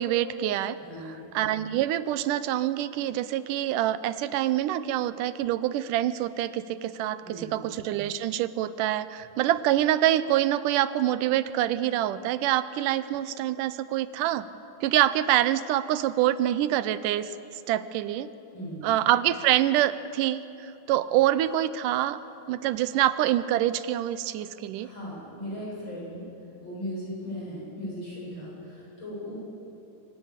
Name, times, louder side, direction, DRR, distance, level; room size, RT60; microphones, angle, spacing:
voice 1, 0.0-0.8 1.3-14.5 14.8-18.3 18.8-22.2 22.5-24.9, right 13 dB, 85° right, 14 dB, 2.2 m, -26 dB
voice 2, 0.8-1.2 7.2-7.6 18.5-18.9 24.8-26.2 26.6-29.4, equal, 35° left, -5 dB, 8.9 m, -37 dB
26.0 x 17.5 x 8.2 m, 2.8 s
omnidirectional pair, 3.7 m